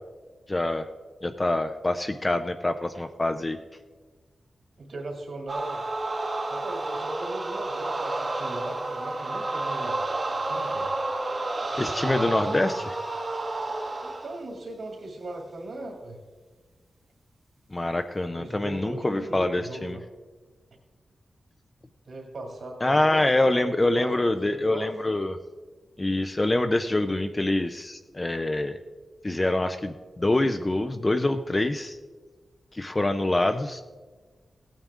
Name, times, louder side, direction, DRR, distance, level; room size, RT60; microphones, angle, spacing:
voice 1, 0.5-0.9 1.2-3.6 11.8-12.8 17.7-20.0 22.8-25.4 26.0-28.8 29.2-32.0 32.7-33.8, left 2 dB, 20° left, 8 dB, 0.4 m, -25 dB
voice 2, 4.8-5.8 6.5-10.9 11.7-12.7 14.0-16.2 18.4-20.0 22.0-24.9, right 2 dB, 65° right, 0 dB, 2.3 m, -39 dB
sound 1, 5.5-14.4, right 2 dB, 30° right, 0.9 m, -30 dB
16.5 x 9.0 x 3.6 m, 1.4 s
wide cardioid pair, 165°, 0 cm